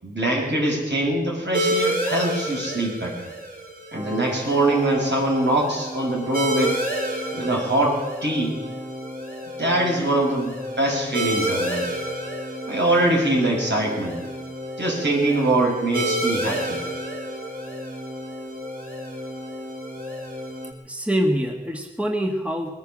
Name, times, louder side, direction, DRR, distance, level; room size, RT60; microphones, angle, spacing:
voice 1, 0.0-3.3 3.9-6.8 7.3-8.6 9.6-11.8 12.7-14.2 14.8-16.8, right 1 dB, 70° right, -3 dB, 5.8 m, -23 dB
sound 1, 1.5-20.7, right 1 dB, 50° right, 3.5 m, -31 dB
sound 2, 3.9-20.7, left 1 dB, 30° right, 1.6 m, -36 dB
voice 2, 20.8-22.7, equal, 5° right, 2 dB, 1.7 m, -24 dB
20.5 x 9.5 x 7.4 m, 1.2 s
wide cardioid pair, 50°, 19 cm